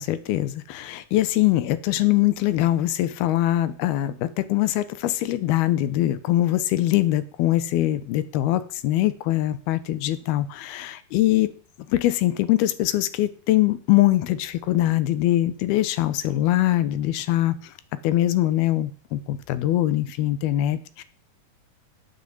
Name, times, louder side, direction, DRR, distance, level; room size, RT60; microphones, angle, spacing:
voice 1, 0.0-11.5 11.9-17.7 18.0-21.0, left 14 dB, 80° left, 14 dB, 2.8 m, -22 dB
9.7 x 8.8 x 7.9 m, 0.43 s
omnidirectional pair, 4.5 m